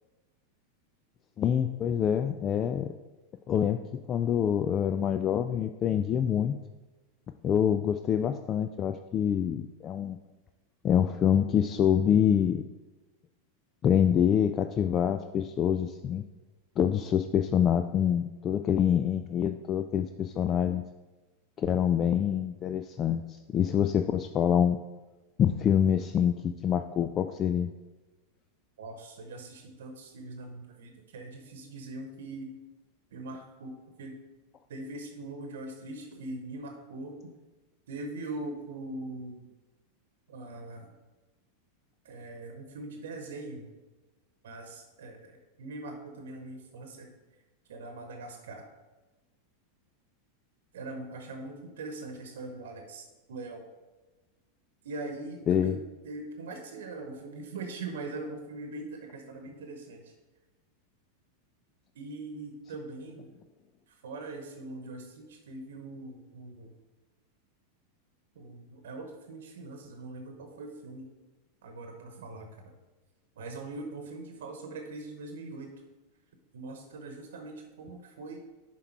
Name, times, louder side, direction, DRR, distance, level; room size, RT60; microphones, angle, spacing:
voice 1, 1.4-2.9 3.5-3.8 4.1-6.6 7.4-10.2 10.8-12.6 13.8-16.2 16.8-20.8 21.6-24.8 25.4-27.7 55.5-55.8, left 9 dB, 35° left, 9 dB, 0.3 m, -26 dB
voice 2, 28.8-32.5 33.1-34.1 34.7-37.3 37.9-39.4 40.3-40.9 42.0-43.7 44.4-47.1 47.7-48.7 50.7-53.6 54.8-55.8 56.0-60.1 61.9-63.3 64.0-66.7 68.3-71.1 71.6-72.7 73.4-75.7 76.5-78.4, right 2 dB, 75° right, 5 dB, 1.0 m, -41 dB
7.1 x 4.6 x 4.6 m, 1.2 s
hypercardioid pair, 100°, 0 cm